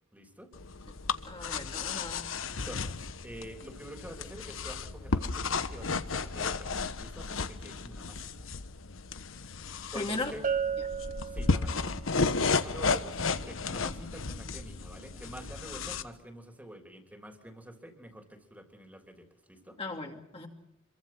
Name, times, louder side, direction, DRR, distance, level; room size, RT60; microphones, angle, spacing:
voice 1, 0.1-0.5 2.5-8.5 9.9-10.4 11.3-19.8, right 1 dB, 10° right, 4 dB, 3.3 m, -47 dB
sound 1, 0.5-16.0, left 4 dB, 80° left, 1.2 m, -33 dB
voice 2, 1.2-2.3 9.9-10.3 19.8-20.5, left 2 dB, 30° left, 1 dB, 2.6 m, -37 dB
Bell, 10.4-12.1, right 7 dB, 40° right, 1.0 m, -33 dB
27.0 x 23.0 x 5.9 m, 0.80 s
head